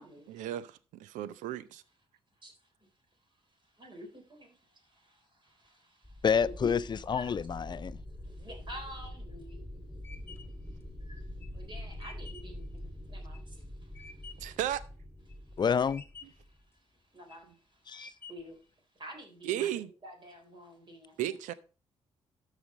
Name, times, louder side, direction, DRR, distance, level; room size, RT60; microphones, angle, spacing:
voice 1, 0.3-1.8 14.4-14.8 19.4-19.9 21.2-21.5, right 12 dB, 70° right, 0.6 m, -34 dB
voice 2, 3.8-4.5 5.6-5.7 6.4-6.8 7.1-7.3 8.4-9.6 11.1-11.2 11.5-13.4 17.1-17.5 17.9-18.0 18.3-18.6 19.0-21.1, equal, 40° right, 3.9 m, -47 dB
sound 1, 6.0-16.7, left 1 dB, 10° right, 4.0 m, -45 dB
voice 3, 6.2-6.8 7.1-8.0 15.6-16.0 17.9-18.1, left 6 dB, 35° left, 0.4 m, -28 dB
sound 2, 9.3-14.6 15.0-15.6 15.9-16.5 17.0-17.5 17.9-18.6, left 4 dB, 20° left, 1.2 m, -52 dB
13.0 x 5.1 x 3.8 m
hypercardioid pair, 40°, 13 cm